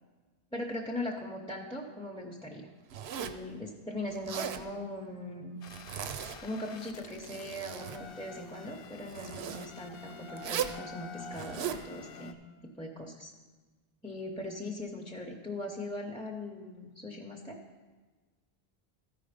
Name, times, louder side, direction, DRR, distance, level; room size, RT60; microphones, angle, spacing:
voice 1, 0.5-2.7 3.2-5.6 6.4-12.4 12.6-13.3 14.0-17.5, left 1 dB, 5° left, 0 dB, 0.7 m, -40 dB
Zipper (clothing), 2.9-3.5 4.1-4.6 5.7-6.4 7.0-8.0 9.1-9.7 10.4-10.8 11.3-11.8, right 9 dB, 85° right, 0.9 m, -37 dB
sound 1, 5.6-12.3, left 5 dB, 70° left, 0.8 m, -48 dB
13.5 x 5.1 x 5.1 m, 1.3 s
omnidirectional pair, 1.0 m